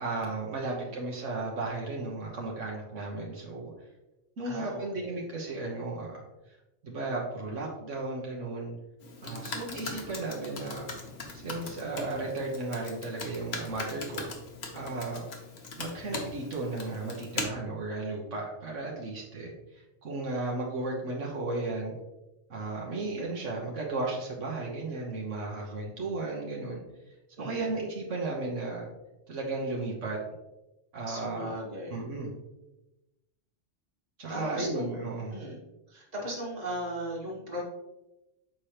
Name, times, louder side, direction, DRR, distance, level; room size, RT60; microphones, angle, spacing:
voice 1, 0.0-3.7 4.4-6.2 6.8-8.7 9.2-10.9 11.4-14.3 14.7-15.2 15.8-21.9 22.5-26.8 27.4-28.9 29.3-30.2 30.9-31.5 31.9-32.3 34.2-35.4, right 2 dB, 75° right, -2 dB, 1.4 m, -34 dB
voice 2, 0.6-0.9 4.4-5.2 9.2-9.5 27.4-27.8 31.1-32.0 34.3-35.6 35.9-37.6, equal, 35° right, -3 dB, 1.7 m, -38 dB
Computer keyboard, 9.0-17.4, left 3 dB, 60° left, 1.2 m, -40 dB
7.4 x 4.9 x 2.9 m, 0.98 s
omnidirectional pair, 1.3 m